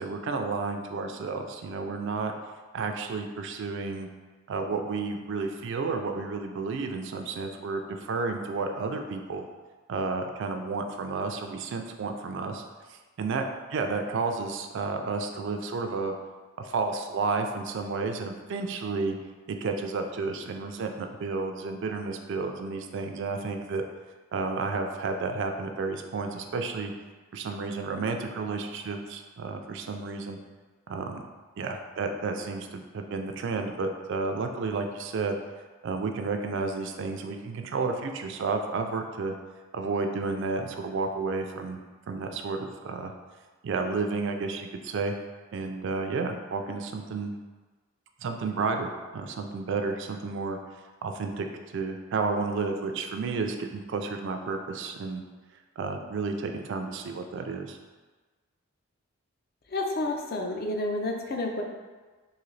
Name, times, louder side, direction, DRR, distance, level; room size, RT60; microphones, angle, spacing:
voice 1, 0.0-2.3 2.7-4.1 4.5-9.5 9.9-12.6 12.9-13.5 13.7-16.1 16.6-19.2 19.5-23.8 24.3-26.9 27.3-30.4 30.9-31.3 31.6-35.3 35.8-39.4 39.7-41.8 42.1-43.1 43.6-45.1 45.5-47.3 48.2-50.6 51.0-51.5 51.7-55.2 55.8-57.8, right 4 dB, 55° right, 5 dB, 0.3 m, -31 dB
voice 2, 59.7-61.6, left 2 dB, 45° left, 2 dB, 0.4 m, -30 dB
3.8 x 2.6 x 3.1 m, 1.3 s
head